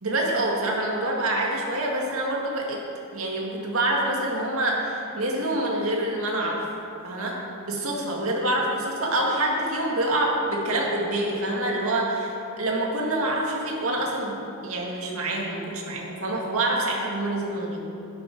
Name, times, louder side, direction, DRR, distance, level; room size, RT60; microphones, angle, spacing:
voice 1, 0.0-2.8 3.1-6.6 7.0-7.4 7.6-17.8, right 1 dB, 70° right, -2 dB, 2.1 m, -26 dB
12.5 x 11.0 x 4.7 m, 2.8 s
head